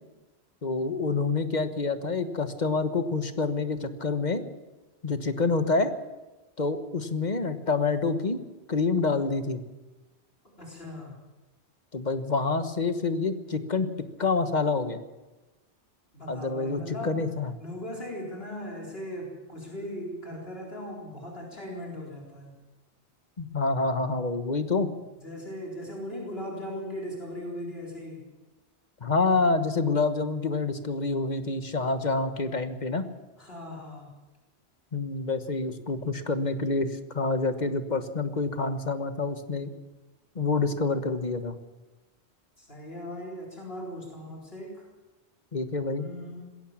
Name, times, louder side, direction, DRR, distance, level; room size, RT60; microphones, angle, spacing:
voice 1, 0.6-4.4 5.0-5.9 6.6-8.4 8.7-9.6 11.9-13.9 14.2-15.0 16.3-17.5 23.4-24.9 29.0-33.0 34.9-39.7 40.3-41.5 45.5-46.1, left 3 dB, 40° left, 9 dB, 1.4 m, -27 dB
voice 2, 10.6-11.1 16.1-17.2 17.6-22.5 25.2-28.2 33.4-34.1 42.6-44.9 46.0-46.5, left 1 dB, 65° left, -2 dB, 4.4 m, -38 dB
21.0 x 17.0 x 7.4 m, 1.1 s
omnidirectional pair, 1.1 m